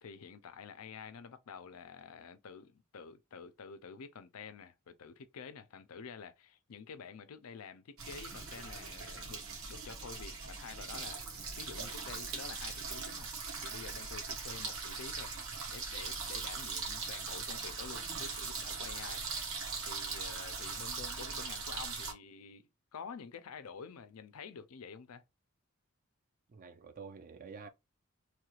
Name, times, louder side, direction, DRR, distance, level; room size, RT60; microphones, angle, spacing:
voice 1, 0.0-9.4 9.7-11.2 11.6-13.3 13.6-15.3 15.6-25.2, left 6 dB, 90° left, 0.5 m, -49 dB
sound 1, 8.0-22.1, right 4 dB, 70° right, 1.2 m, -40 dB
voice 2, 26.5-27.7, right 5 dB, 40° right, 0.5 m, -49 dB
3.2 x 2.4 x 3.1 m
head